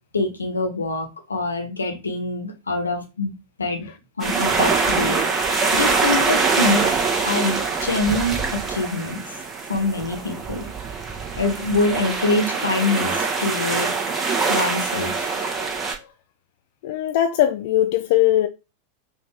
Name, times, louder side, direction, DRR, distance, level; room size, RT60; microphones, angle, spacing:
voice 1, 0.1-3.3 3.6-3.9 4.2-5.2 5.7-7.0 7.2-9.4 9.7-10.7 11.4-13.9 14.5-15.4, left 2 dB, 75° left, 1.1 m, -25 dB
sound 1, 4.2-15.9, right 4 dB, 20° right, 1.2 m, -23 dB
voice 2, 16.8-18.5, left 12 dB, 50° left, 0.4 m, -19 dB
5.7 x 2.8 x 3.3 m
figure-of-eight pair, 90°, 0 cm